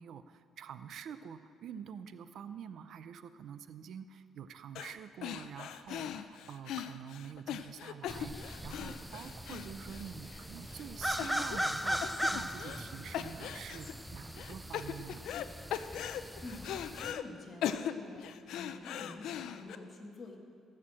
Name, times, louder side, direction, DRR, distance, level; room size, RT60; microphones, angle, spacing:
voice 1, 0.0-15.2, right 8 dB, 60° right, 12 dB, 0.5 m, -47 dB
sound 1, 4.8-5.0 5.2-10.4 10.7-10.8 11.2-11.8 12.0-12.9 13.1-13.9 14.4-15.5 15.7-17.2 17.6-19.8, left 10 dB, 75° left, 0.5 m, -39 dB
sound 2, 8.1-17.1, equal, ahead, 0.5 m, -39 dB
voice 2, 16.4-20.4, left 2 dB, 35° left, 1 dB, 1.7 m, -48 dB
16.5 x 6.5 x 7.5 m, 2.4 s
cardioid pair, 145°, 0 cm